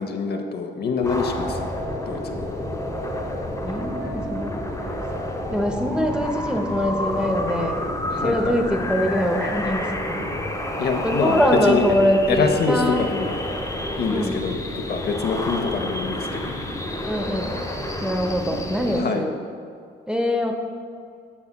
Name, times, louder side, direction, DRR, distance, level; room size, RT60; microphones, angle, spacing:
voice 1, 0.0-1.7 2.1-2.6 8.1-8.6 10.8-11.8 12.3-13.4 14.0-16.6 18.9-19.3, left 5 dB, 55° left, 4 dB, 0.7 m, -25 dB
sound 1, 1.0-19.0, left 1 dB, 15° left, 1.1 m, -29 dB
voice 2, 3.6-4.6 5.5-7.9 8.2-10.2 11.0-13.1 14.1-14.4 17.0-17.6 18.0-19.3 20.1-20.6, equal, 5° right, 2 dB, 0.6 m, -23 dB
13.0 x 4.8 x 2.2 m, 2.3 s
cardioid pair, 90°, 20 cm